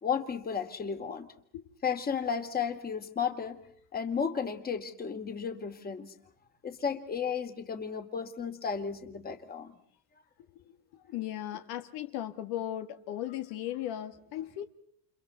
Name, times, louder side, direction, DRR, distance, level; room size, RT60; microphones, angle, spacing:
voice 1, 0.0-1.3 1.8-3.6 3.9-6.1 6.6-9.7, left 6 dB, 25° left, 7 dB, 2.4 m, -33 dB
voice 2, 10.5-14.6, left 12 dB, 70° left, 8 dB, 1.9 m, -37 dB
30.0 x 29.0 x 4.1 m, 0.65 s
cardioid pair, 145°, 39 cm